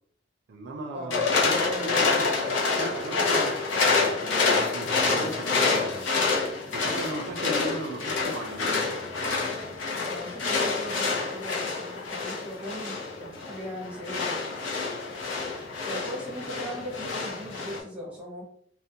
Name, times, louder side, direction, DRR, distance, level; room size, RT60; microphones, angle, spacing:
voice 1, 0.5-6.0 6.7-9.5, right 2 dB, 60° right, 1 dB, 0.4 m, -38 dB
sound 1, 1.1-17.8, left 4 dB, 80° left, 0.5 m, -27 dB
voice 2, 1.6-2.0 9.6-14.5 15.9-18.4, right 1 dB, 5° right, -4 dB, 0.8 m, -39 dB
2.3 x 2.1 x 2.7 m, 0.65 s
head